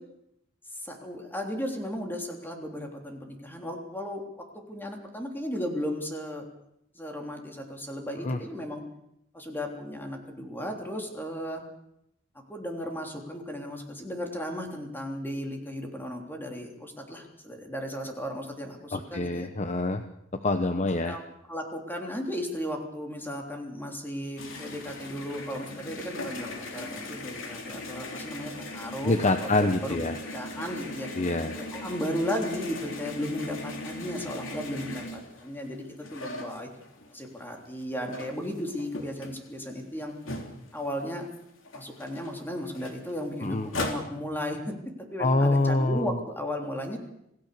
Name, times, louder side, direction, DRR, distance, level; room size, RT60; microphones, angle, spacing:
voice 1, 0.8-6.4 6.9-8.8 9.3-11.6 12.5-19.5 21.1-21.2 21.5-29.6 29.8-31.1 31.6-35.8 36.1-36.7 37.1-40.1 40.7-41.3 41.7-44.8 45.1-47.0, equal, 10° left, 2 dB, 3.5 m, -35 dB
voice 2, 18.9-20.0 20.3-21.2 29.0-30.2 31.2-31.5 43.4-43.7 45.2-46.0, left 2 dB, 35° left, 7 dB, 1.0 m, -25 dB
sound 1, 24.4-37.2 37.6-41.0 41.3-41.4 41.6-44.0, left 2 dB, 70° left, 3.5 m, -39 dB
27.5 x 17.0 x 6.9 m, 0.80 s
head